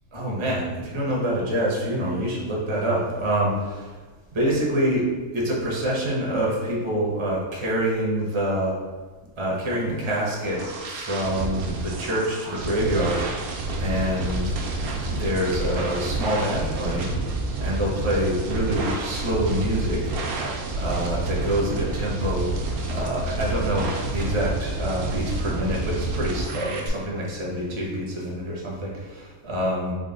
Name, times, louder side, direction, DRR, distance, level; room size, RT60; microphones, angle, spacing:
voice 1, 0.1-3.9 4.3-8.8 9.4-13.4 13.8-14.5 15.1-17.2 17.6-20.1 20.7-22.5 22.9-29.9, right 1 dB, 40° right, -3 dB, 0.4 m, -26 dB
sound 1, 9.9-26.9, right 2 dB, 90° right, 1.1 m, -29 dB
3.7 x 2.1 x 3.7 m, 1.3 s
omnidirectional pair, 1.5 m